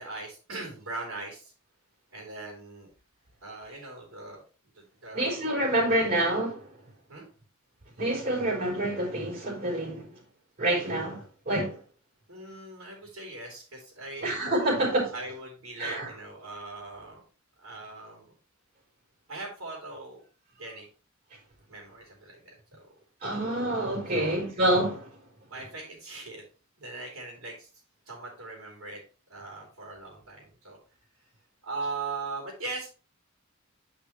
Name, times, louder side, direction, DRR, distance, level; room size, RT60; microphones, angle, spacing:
voice 1, 0.0-1.5 2.1-2.9 3.4-4.4 4.7-5.3 7.1-7.3 12.3-14.7 15.1-17.2 17.6-18.3 19.3-20.9 21.7-22.8 24.1-24.5 25.5-26.4 26.8-27.7 28.0-29.0 29.3-30.8 31.6-32.9, right 3 dB, 75° right, 3.2 m, -40 dB
voice 2, 5.1-6.7 8.0-10.1 10.6-11.8 14.2-15.1 15.8-16.1 23.2-25.1, right 1 dB, 40° right, 4.3 m, -27 dB
10.0 x 5.0 x 3.1 m
head